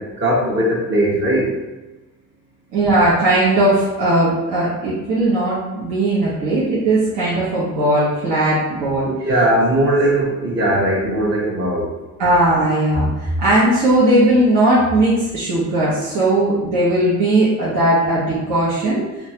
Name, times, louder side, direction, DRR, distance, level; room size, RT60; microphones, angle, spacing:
voice 1, 0.0-1.6 9.1-12.0, right 1 dB, 40° right, -4 dB, 0.7 m, -19 dB
voice 2, 2.7-9.1 12.2-19.0, right 1 dB, 85° right, -9 dB, 0.9 m, -17 dB
3.0 x 2.2 x 2.8 m, 1.1 s
cardioid pair, 90°, 30 cm